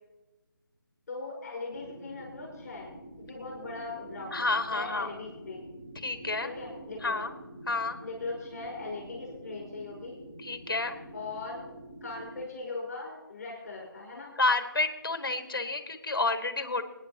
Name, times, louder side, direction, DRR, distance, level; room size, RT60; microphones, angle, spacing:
voice 1, 1.1-2.9 3.3-5.7 6.4-7.2 8.0-10.2 11.1-11.6 12.0-14.3, left 3 dB, 45° left, -3 dB, 5.3 m, -40 dB
sound 1, 1.7-12.4, right 1 dB, 5° right, 2.9 m, -47 dB
voice 2, 4.3-5.1 6.0-6.5 7.0-7.3 7.7-8.0 10.4-11.0 14.4-16.8, left 3 dB, 70° left, 8 dB, 1.9 m, -29 dB
24.5 x 10.0 x 3.0 m, 1.1 s
figure-of-eight pair, 160°, 12 cm